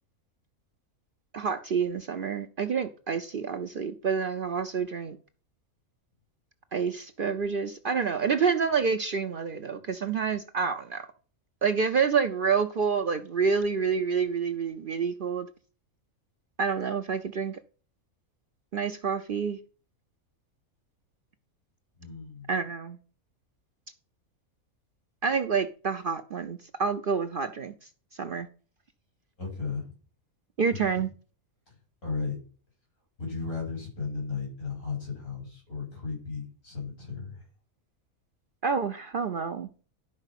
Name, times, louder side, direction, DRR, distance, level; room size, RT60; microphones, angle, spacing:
voice 1, 1.3-5.2 6.7-11.1 11.6-15.5 16.6-17.6 18.7-19.6 22.5-23.0 25.2-27.7 28.2-28.5 30.6-31.1 38.6-39.7, right 6 dB, 55° right, 0.6 m, -28 dB
voice 2, 22.0-22.5 29.4-29.9 30.7-30.8 32.0-32.4 33.2-37.4, left 4 dB, 90° left, 6.3 m, -35 dB
11.5 x 4.5 x 5.8 m
omnidirectional pair, 1.5 m